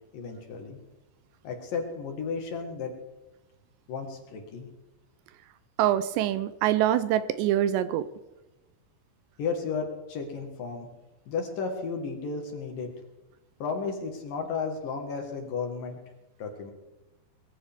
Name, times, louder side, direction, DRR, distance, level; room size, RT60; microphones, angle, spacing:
voice 1, 0.1-0.8 1.4-2.9 3.9-4.7 9.4-10.9 11.3-12.9 13.6-16.0 16.4-16.7, left 5 dB, 60° left, 3 dB, 2.9 m, -33 dB
voice 2, 5.8-8.1, right 12 dB, 80° right, 14 dB, 2.7 m, -25 dB
21.5 x 14.0 x 3.6 m, 1.0 s
omnidirectional pair, 5.2 m